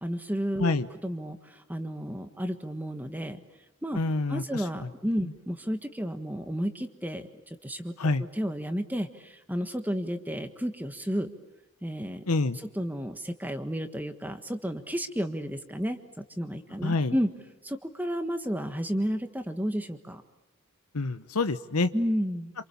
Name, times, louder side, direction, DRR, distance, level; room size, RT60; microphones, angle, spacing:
voice 1, 0.0-0.7 1.0-3.4 3.8-4.0 4.3-11.3 11.8-12.2 12.5-16.0 16.4-17.3 17.6-20.2 21.9-22.5, equal, 10° right, 7 dB, 1.4 m, -32 dB
voice 2, 3.9-4.4 8.0-8.2 12.3-12.6 16.8-17.1 20.9-21.9, left 3 dB, 85° left, 11 dB, 1.1 m, -26 dB
28.0 x 27.5 x 7.1 m, 0.99 s
head